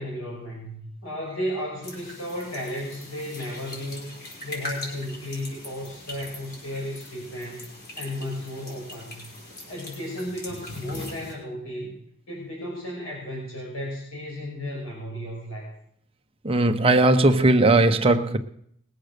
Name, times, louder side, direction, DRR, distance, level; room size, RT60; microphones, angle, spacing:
voice 1, 0.0-4.1 4.4-7.7 8.0-9.2 9.7-12.0 12.3-15.7, left 1 dB, 75° left, 5.7 m, -34 dB
sound 1, 1.8-11.3, left 1 dB, 45° left, 4.9 m, -41 dB
voice 2, 16.4-18.4, right 2 dB, 25° right, 0.8 m, -18 dB
20.0 x 7.7 x 6.6 m
head